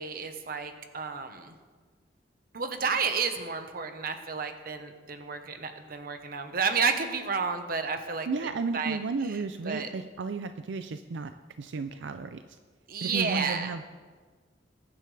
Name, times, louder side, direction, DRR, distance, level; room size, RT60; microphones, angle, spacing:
voice 1, 0.0-1.5 2.5-8.3 8.7-9.0 9.7-9.9 12.9-13.7, right 5 dB, 55° right, 7 dB, 1.1 m, -31 dB
voice 2, 8.3-11.3 11.6-12.6 13.0-13.8, right 4 dB, 85° right, 9 dB, 0.5 m, -33 dB
22.0 x 10.0 x 3.4 m, 1.5 s
head